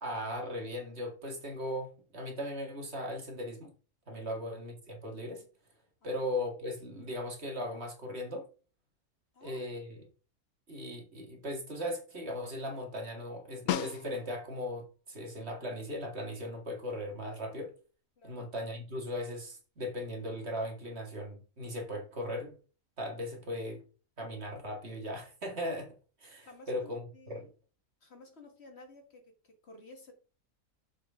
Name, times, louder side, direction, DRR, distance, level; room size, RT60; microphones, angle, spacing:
voice 1, 0.0-3.7 4.1-5.5 6.0-8.5 9.4-10.1 10.7-17.7 18.2-22.6 23.0-23.8 24.2-25.9 26.2-27.0 27.3-27.5, left 1 dB, 45° right, 2 dB, 2.1 m, -38 dB
voice 2, 9.3-9.7 18.2-18.4 26.5-27.5 28.0-30.1, left 2 dB, 45° left, 4 dB, 1.8 m, -54 dB
Snare drum, 13.7-14.6 19.0-19.1, left 11 dB, 85° left, 1.1 m, -35 dB
7.2 x 6.2 x 3.6 m, 0.36 s
omnidirectional pair, 1.5 m